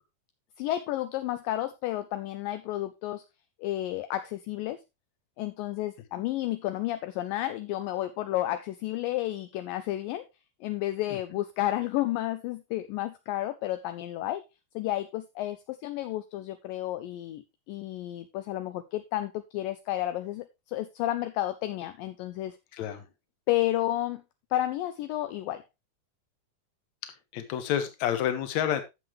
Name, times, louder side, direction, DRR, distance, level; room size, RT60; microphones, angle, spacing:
voice 1, 0.6-3.2 3.6-4.8 5.4-10.2 10.6-14.4 14.8-22.6 23.5-24.2 24.5-25.6, left 14 dB, 80° left, 10 dB, 2.2 m, -31 dB
voice 2, 22.7-23.1 27.3-28.8, left 10 dB, 60° left, 9 dB, 2.2 m, -29 dB
11.5 x 7.3 x 3.1 m, 0.23 s
omnidirectional pair, 4.3 m